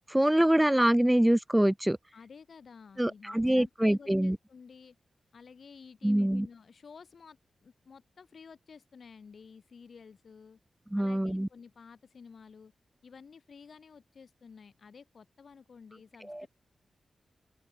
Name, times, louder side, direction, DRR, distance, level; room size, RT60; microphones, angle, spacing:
voice 1, 0.1-2.0 3.0-4.4 6.0-6.5 10.9-11.5 16.3-16.5, right 1 dB, 10° right, 0.4 m, -25 dB
voice 2, 2.1-5.0 5.3-10.6 10.9-12.7 13.0-16.5, left 5 dB, 70° left, 2.5 m, -52 dB
open air
supercardioid pair, 40°, 0 cm